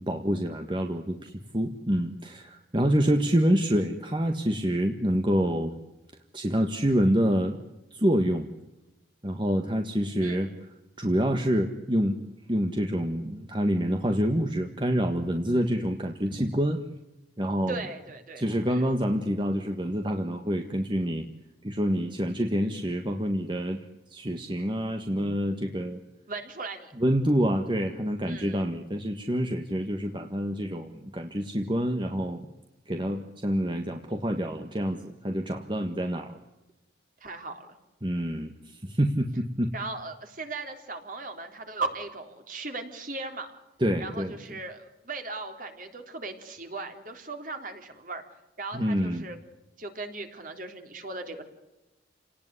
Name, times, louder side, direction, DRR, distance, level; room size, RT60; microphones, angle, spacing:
voice 1, 0.0-5.7 6.3-7.6 7.9-8.5 9.2-10.5 11.0-12.2 12.5-16.8 17.4-17.8 18.4-21.3 21.6-23.8 24.1-26.0 27.0-32.5 32.9-36.4 38.0-39.7 43.8-44.4 48.7-49.3, equal, 25° right, 5 dB, 1.6 m, -27 dB
voice 2, 10.2-10.6 17.7-18.9 26.3-26.9 28.3-28.7 37.2-37.7 39.7-43.5 44.0-48.2 48.6-49.4 49.8-51.4, right 3 dB, 45° right, 5 dB, 3.7 m, -38 dB
29.5 x 19.0 x 9.8 m, 0.99 s
head